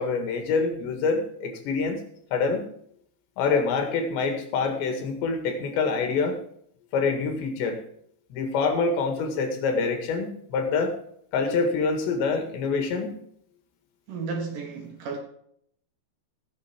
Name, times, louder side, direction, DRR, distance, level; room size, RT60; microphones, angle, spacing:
voice 1, 0.0-2.0 2.3-2.7 3.4-6.4 6.9-7.8 8.3-10.9 11.3-13.1, left 4 dB, 80° left, 5 dB, 4.2 m, -26 dB
voice 2, 14.1-15.2, right 4 dB, 60° right, 2 dB, 2.8 m, -33 dB
18.5 x 6.5 x 4.5 m, 0.68 s
omnidirectional pair, 5.0 m